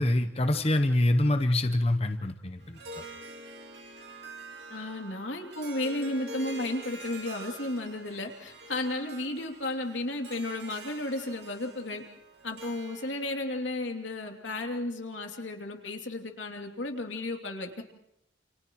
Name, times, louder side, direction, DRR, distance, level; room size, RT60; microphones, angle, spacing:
voice 1, 0.0-2.8, left 1 dB, 35° left, 8 dB, 0.9 m, -25 dB
Harp, 2.6-13.5, right 2 dB, 65° right, 2.4 m, -46 dB
voice 2, 4.7-12.0 12.4-17.8, left 2 dB, 85° left, 3 dB, 2.9 m, -33 dB
29.5 x 29.0 x 3.1 m, 0.76 s
head